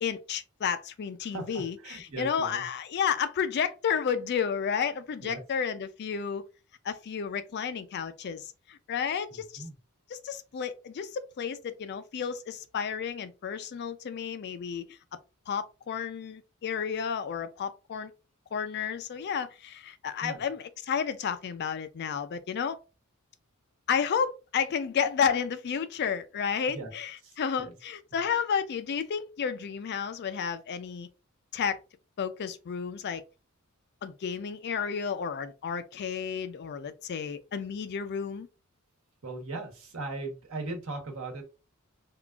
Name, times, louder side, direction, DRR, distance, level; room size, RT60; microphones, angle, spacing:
voice 1, 0.0-6.4 6.8-9.6 10.1-15.0 15.5-18.1 18.5-22.8 23.9-27.1 27.4-31.1 31.5-31.8 32.2-33.2 34.0-38.5, left 7 dB, 50° left, 0.4 m, -31 dB
voice 2, 1.2-2.7 5.2-5.4 9.3-9.8 20.2-20.5 26.7-26.9 27.2-27.7 39.2-41.4, right 2 dB, 70° right, 1.1 m, -39 dB
3.6 x 2.4 x 2.3 m
head